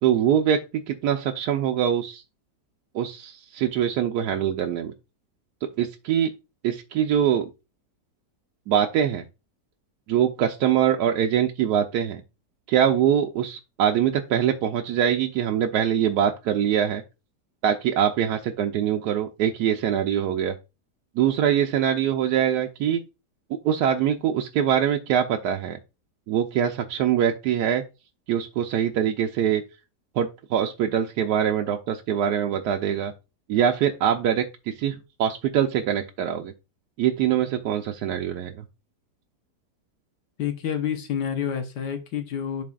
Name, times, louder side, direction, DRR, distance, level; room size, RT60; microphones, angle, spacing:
voice 1, 0.0-2.2 2.9-4.9 5.8-6.3 6.6-7.5 8.7-9.2 10.1-12.2 12.7-17.0 17.6-20.6 21.2-23.0 23.5-25.8 26.3-27.8 28.3-29.6 30.2-33.1 33.5-36.5 37.0-38.6, right 9 dB, 75° right, 1.1 m, -23 dB
voice 2, 40.4-42.6, left 8 dB, 75° left, 1.5 m, -28 dB
11.0 x 4.2 x 2.3 m
omnidirectional pair, 1.8 m